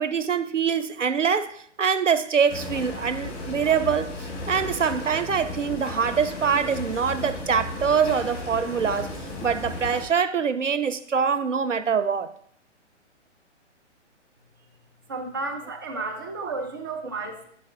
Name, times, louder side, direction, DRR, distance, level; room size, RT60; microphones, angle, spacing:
voice 1, 0.0-9.1 9.4-12.3 16.4-16.5, right 6 dB, 85° right, 0.6 m, -24 dB
sound 1, 2.5-10.0, left 2 dB, 25° left, 2.0 m, -35 dB
voice 2, 15.1-17.4, right 3 dB, 20° right, 0.4 m, -32 dB
11.0 x 4.6 x 2.6 m
figure-of-eight pair, 125°, 36 cm